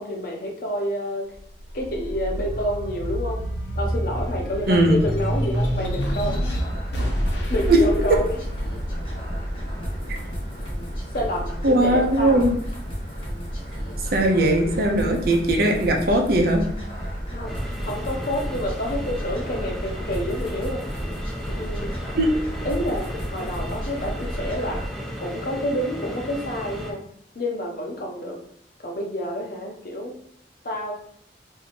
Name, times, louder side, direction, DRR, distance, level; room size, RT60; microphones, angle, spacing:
voice 1, 0.0-1.3 1.7-3.4 3.7-6.4 7.5-8.2 11.1-12.5 17.3-17.6 17.9-20.8 21.5-21.9 22.6-24.8 25.2-27.0 27.3-28.4 28.8-30.1 30.6-30.9, equal, 55° left, 0 dB, 0.8 m, -28 dB
sound 1, 1.4-12.1 12.6-13.8, equal, 85° left, 0.9 m, -29 dB
voice 2, 4.7-5.0 7.7-7.8 11.6-12.6 14.1-16.7 22.1-22.3, right 1 dB, 60° right, 2 dB, 0.6 m, -19 dB
sound 2, 6.0-24.9, equal, 30° left, 1.0 m, -32 dB
sound 3, 17.5-26.9, equal, ahead, 0.5 m, -35 dB
2.8 x 2.7 x 4.2 m, 0.66 s
head